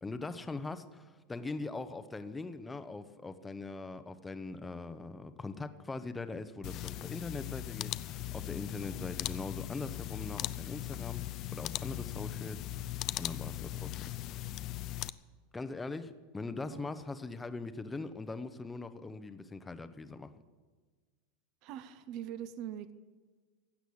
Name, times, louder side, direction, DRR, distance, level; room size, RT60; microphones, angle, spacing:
voice 1, 0.0-11.2 11.5-12.9 13.2-14.0 15.5-20.3, left 3 dB, 10° left, 11 dB, 0.8 m, -41 dB
sound 1, 6.6-15.1, left 15 dB, 40° left, 0.4 m, -39 dB
voice 2, 21.6-22.9, right 10 dB, 45° right, 13 dB, 0.7 m, -42 dB
16.0 x 8.1 x 8.6 m, 1.4 s
supercardioid pair, 150°, 0 cm